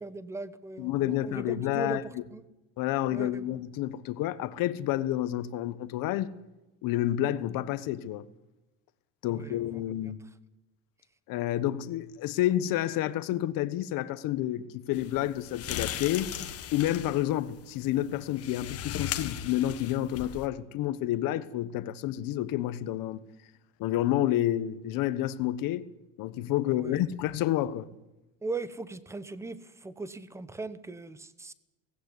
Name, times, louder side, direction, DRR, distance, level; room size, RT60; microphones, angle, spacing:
voice 1, 0.0-2.4 3.1-3.4 9.3-9.6 26.7-27.0 28.4-31.5, right 3 dB, 5° right, 0.9 m, -39 dB
voice 2, 0.8-2.2 2.8-6.3 6.8-8.3 9.2-10.2 11.3-16.3 16.7-23.2 23.8-25.9 26.2-27.9, left 13 dB, 60° left, 1.3 m, -29 dB
sound 1, 14.9-20.5, left 10 dB, 40° left, 1.6 m, -38 dB
18.5 x 16.5 x 9.9 m
cardioid pair, 165°, 38 cm